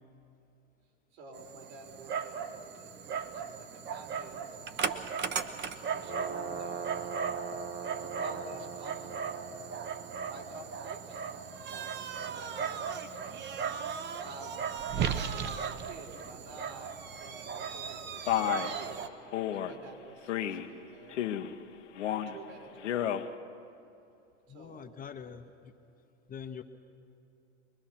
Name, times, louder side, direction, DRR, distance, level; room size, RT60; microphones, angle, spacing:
voice 1, 1.1-5.4 5.6-7.1 7.8-9.1 10.3-11.3 11.7-13.4 14.2-14.7 14.9-19.1 19.5-21.2 21.7-22.9 24.5-24.9, right 3 dB, 65° right, -1 dB, 4.8 m, -50 dB
Dog, 1.3-19.1, right 7 dB, 30° right, 1.0 m, -36 dB
Male speech man speaking, 18.3-18.7 19.3-19.7 20.3-20.7 21.1-21.5 21.9-22.4 22.8-23.3, left 11 dB, 75° left, 1.1 m, -31 dB
voice 2, 24.5-25.7 26.3-26.6, left 7 dB, 25° left, 7 dB, 0.9 m, -44 dB
24.0 x 21.5 x 5.9 m, 2.7 s
hypercardioid pair, 100°, 36 cm